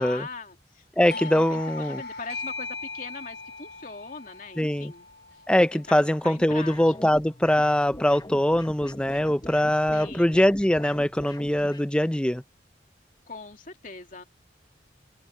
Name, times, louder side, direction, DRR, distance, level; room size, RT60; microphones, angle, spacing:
voice 1, 0.0-0.8 1.2-5.1 5.7-7.2 9.7-10.5 13.3-14.2, left 4 dB, 45° left, 2.6 m, -41 dB
voice 2, 1.0-2.0 4.6-4.9 5.5-12.4, left 1 dB, 5° left, 0.5 m, -22 dB
Doorbell, 1.1-6.4, left 3 dB, 65° left, 1.3 m, -39 dB
sound 1, 6.5-11.9, left 1 dB, 25° left, 1.2 m, -43 dB
open air
head